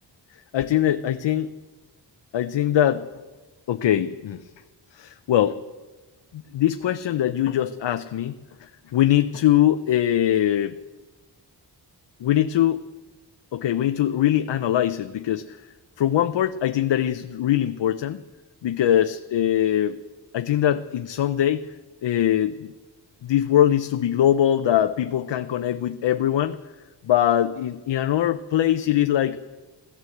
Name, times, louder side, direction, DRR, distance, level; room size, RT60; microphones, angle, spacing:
voice 1, 0.5-1.5 2.3-3.1 3.7-4.4 4.9-5.6 6.3-10.8 12.2-12.8 13.5-15.6 16.0-18.2 18.6-20.0 20.3-21.7 22.0-22.7 23.2-26.6 27.0-29.4, left 11 dB, 85° left, 9 dB, 0.6 m, -22 dB
16.0 x 11.5 x 7.8 m, 1.2 s
wide cardioid pair, 95°, 42 cm